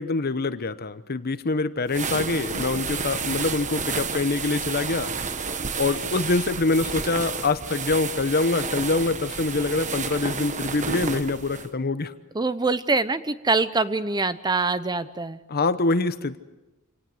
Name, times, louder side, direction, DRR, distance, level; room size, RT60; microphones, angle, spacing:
voice 1, 0.0-5.1 5.8-12.1 15.5-16.4, left 3 dB, 45° left, 12 dB, 1.0 m, -25 dB
sound 1, 1.9-11.7, right 5 dB, 35° right, 1.2 m, -31 dB
voice 2, 12.3-15.4, right 3 dB, 20° right, 13 dB, 0.8 m, -24 dB
27.5 x 18.5 x 7.8 m, 1.1 s
head